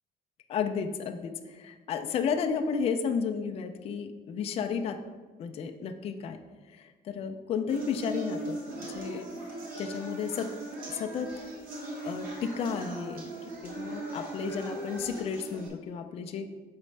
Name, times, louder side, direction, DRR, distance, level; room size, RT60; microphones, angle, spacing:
voice 1, 0.5-5.0 5.4-6.4 6.7-9.3 9.8-10.5 10.9-11.3 12.0-13.3 13.6-16.5, left 6 dB, 35° left, 5 dB, 0.4 m, -33 dB
sound 1, 7.7-15.7, right 2 dB, 55° right, 1.3 m, -39 dB
6.3 x 5.0 x 3.2 m, 1.3 s
cardioid pair, 175°, 18 cm